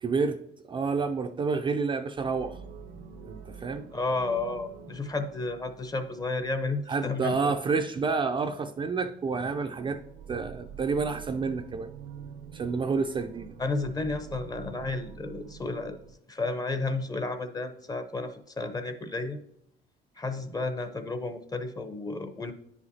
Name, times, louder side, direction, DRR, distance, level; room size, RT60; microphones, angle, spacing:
voice 1, 0.0-2.6 3.2-3.8 6.9-10.0 10.3-11.9 12.5-13.5, right 4 dB, 30° right, 6 dB, 0.4 m, -29 dB
sound 1, 2.2-7.0 9.1-16.1, right 6 dB, 75° right, 0.6 m, -47 dB
voice 2, 3.9-7.5 13.6-16.0 16.3-19.4 20.2-22.5, left 3 dB, 20° left, 9 dB, 0.6 m, -32 dB
10.0 x 4.9 x 2.7 m, 0.76 s
cardioid pair, 110°, 17 cm